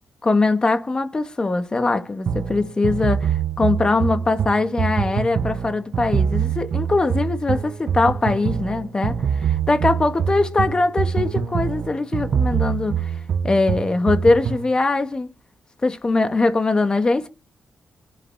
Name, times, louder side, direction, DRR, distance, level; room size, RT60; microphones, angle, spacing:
voice 1, 0.2-13.1 13.4-15.3 15.8-17.3, left 3 dB, 30° left, 1.9 m, -21 dB
sound 1, 2.3-14.7, right 7 dB, 60° right, 1.2 m, -24 dB
24.5 x 11.0 x 4.3 m
cardioid pair, 85°, 3 cm